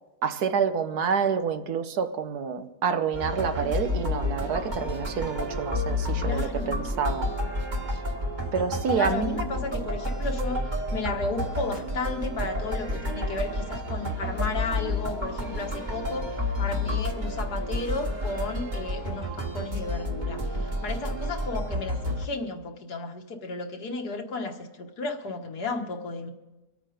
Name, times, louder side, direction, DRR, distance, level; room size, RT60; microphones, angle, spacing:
voice 1, 0.2-7.3 8.5-9.4, right 6 dB, 75° right, 9 dB, 1.5 m, -28 dB
sound 1, 3.1-22.3, left 1 dB, 30° right, 2.1 m, -30 dB
voice 2, 6.2-6.9 8.9-26.3, left 3 dB, 75° left, 4 dB, 1.9 m, -34 dB
25.5 x 9.1 x 5.0 m, 1.1 s
omnidirectional pair, 1.7 m